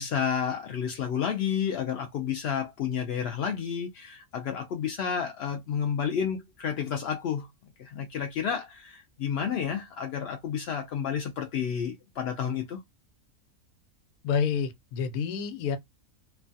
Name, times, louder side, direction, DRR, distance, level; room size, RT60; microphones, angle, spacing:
voice 1, 0.0-7.5 7.8-12.8, left 7 dB, 65° left, 0.6 m, -31 dB
voice 2, 14.2-15.8, left 6 dB, 90° left, 1.2 m, -28 dB
3.1 x 2.2 x 2.5 m
omnidirectional pair, 1.5 m